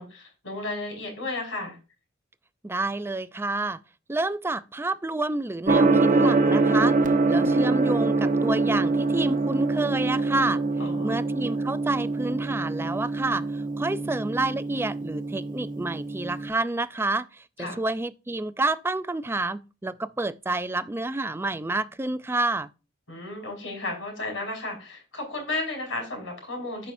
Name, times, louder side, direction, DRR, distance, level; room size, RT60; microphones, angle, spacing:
voice 1, 0.0-1.8 10.8-11.2 13.9-14.2 17.6-17.8 23.1-26.9, left 2 dB, 85° left, 5.1 m, -34 dB
voice 2, 2.6-3.8 4.1-10.6 11.0-22.7, right 2 dB, 10° right, 0.4 m, -29 dB
Gong, 5.7-16.5, right 3 dB, 45° right, 0.9 m, -24 dB
13.0 x 5.6 x 2.6 m
head